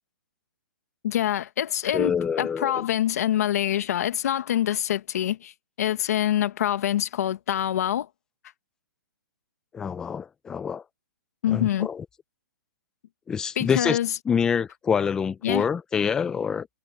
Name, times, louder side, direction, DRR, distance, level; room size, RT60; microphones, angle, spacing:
voice 1, 1.0-8.1 11.4-11.9 13.6-14.1 15.4-15.6, left 11 dB, 50° left, 1.3 m, -25 dB
voice 2, 1.9-2.8 9.7-10.8 11.5-12.0 13.3-14.0 14.3-16.7, left 7 dB, 5° left, 0.4 m, -26 dB
hypercardioid pair, 170°, 11 cm